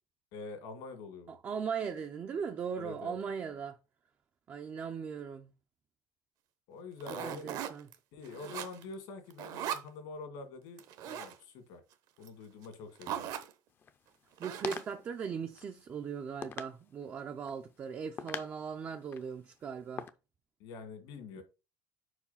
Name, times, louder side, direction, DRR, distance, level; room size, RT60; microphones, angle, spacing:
voice 1, 0.3-1.4 2.8-3.2 6.7-7.6 8.1-11.8 12.2-13.3 20.6-21.4, left 4 dB, 70° left, 2.0 m, -46 dB
voice 2, 1.3-3.8 4.5-5.5 7.2-7.9 14.4-20.1, right 6 dB, 25° right, 0.4 m, -39 dB
sound 1, 7.0-7.9 8.2-8.9 9.3-9.9 10.8-11.3 12.3-12.4 12.6-12.7 13.0-13.5 14.4-15.0, right 10 dB, 55° right, 0.8 m, -39 dB
sound 2, 13.7-20.1, left 6 dB, 25° left, 0.5 m, -46 dB
4.8 x 4.8 x 5.5 m
cardioid pair, 160°, 8 cm